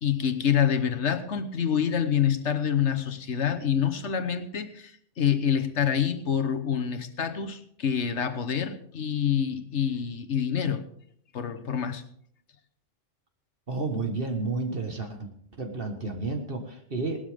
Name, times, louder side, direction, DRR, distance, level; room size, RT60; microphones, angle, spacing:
voice 1, 0.0-10.8 11.3-12.0, left 8 dB, 80° left, 8 dB, 1.4 m, -27 dB
voice 2, 13.7-15.3 15.6-17.2, right 3 dB, 55° right, 4 dB, 1.7 m, -31 dB
19.0 x 12.5 x 3.5 m, 0.65 s
omnidirectional pair, 1.2 m